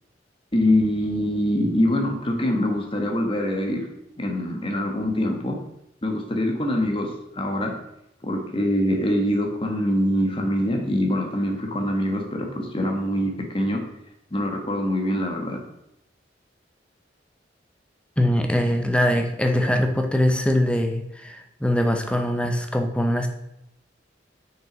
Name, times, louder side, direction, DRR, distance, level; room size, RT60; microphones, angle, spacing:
voice 1, 0.5-3.9 4.2-5.6 6.0-7.7 8.2-13.8 14.3-15.6, left 1 dB, 30° left, 2 dB, 1.4 m, -24 dB
voice 2, 18.2-23.3, left 1 dB, 5° left, 5 dB, 0.8 m, -22 dB
6.2 x 6.1 x 5.1 m, 0.82 s
head